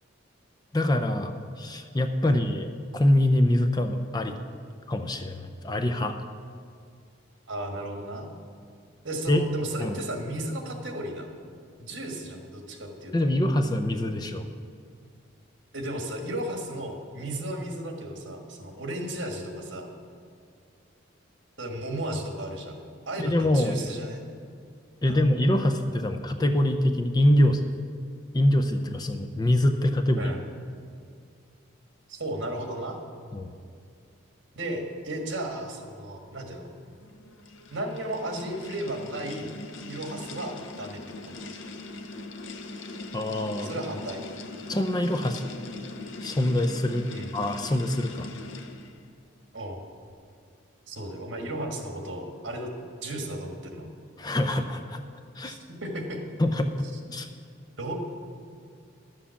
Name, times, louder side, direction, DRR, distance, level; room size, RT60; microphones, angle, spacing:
voice 1, 0.7-4.4 4.9-6.2 9.3-9.4 9.8-10.0 13.1-14.4 23.2-23.8 25.0-27.6 28.3-30.3 33.3-33.5 43.1-43.8 44.7-45.4 46.2-47.1 47.3-48.3 54.2-55.0 55.3-55.6 56.4-57.3, left 1 dB, 20° left, 6 dB, 0.5 m, -24 dB
voice 2, 7.5-8.3 9.0-11.3 11.8-13.1 15.7-19.9 21.6-22.8 23.1-24.2 25.1-25.2 30.2-30.4 32.1-33.0 34.5-36.7 37.7-39.5 39.8-41.4 43.6-44.2 47.1-47.3 49.5-49.8 50.9-53.9 55.4-56.2 57.8-58.0, right 1 dB, 65° right, 3 dB, 1.7 m, -34 dB
sound 1, 36.9-49.1, left 2 dB, 70° left, 0.8 m, -41 dB
11.5 x 7.3 x 7.0 m, 2.3 s
head